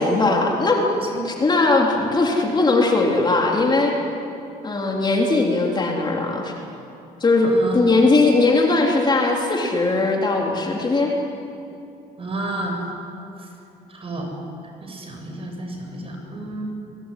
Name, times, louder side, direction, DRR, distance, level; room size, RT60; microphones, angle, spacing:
voice 1, 0.0-0.8 1.2-3.9 4.6-6.5 7.2-11.1, left 3 dB, 25° left, 0 dB, 3.4 m, -19 dB
voice 2, 0.7-1.2 7.4-7.9 12.2-12.8 13.4-13.5 13.9-14.3 14.8-16.6, right 2 dB, 35° right, 2 dB, 7.3 m, -31 dB
24.0 x 22.0 x 9.9 m, 2.7 s
cardioid pair, 110°, 17 cm